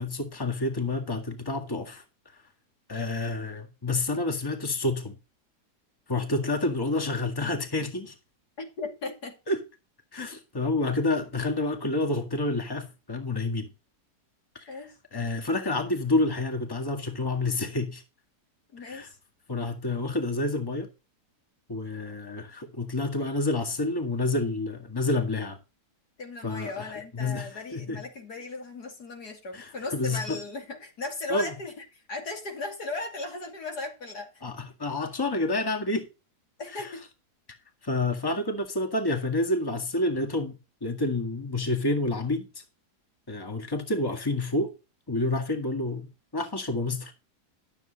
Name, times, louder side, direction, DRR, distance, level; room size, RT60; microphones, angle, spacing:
voice 1, 0.0-2.0 2.9-5.2 6.1-8.1 9.5-9.6 10.1-13.7 14.5-14.7 15.1-18.0 18.8-19.1 19.5-20.9 21.7-25.6 26.4-28.0 29.5-30.4 31.3-31.5 34.4-36.1 36.7-36.9 37.8-42.6 43.3-44.7 45.1-47.1, left 2 dB, 15° left, 1.9 m, -29 dB
voice 2, 8.6-9.4 14.7-14.9 18.7-19.2 26.2-34.5 36.6-37.0, left 3 dB, 75° left, 3.1 m, -37 dB
12.5 x 7.5 x 4.1 m
omnidirectional pair, 1.7 m